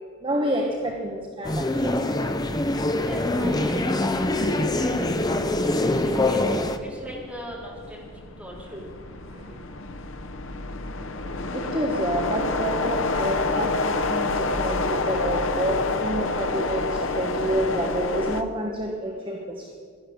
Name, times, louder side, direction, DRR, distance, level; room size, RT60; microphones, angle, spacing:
voice 1, 0.2-2.1 8.7-8.9 9.3-9.6 11.5-19.7, right 1 dB, 25° right, 1 dB, 1.2 m, -29 dB
sound 1, 1.4-6.8, left 1 dB, 20° left, 0.7 m, -24 dB
voice 2, 3.1-4.5 4.7-6.4 6.8-8.1 8.4-8.8, equal, 5° right, -4 dB, 3.9 m, -41 dB
sound 2, 4.7-18.4, left 3 dB, 65° left, 0.9 m, -28 dB
17.5 x 12.0 x 7.1 m, 2.2 s
head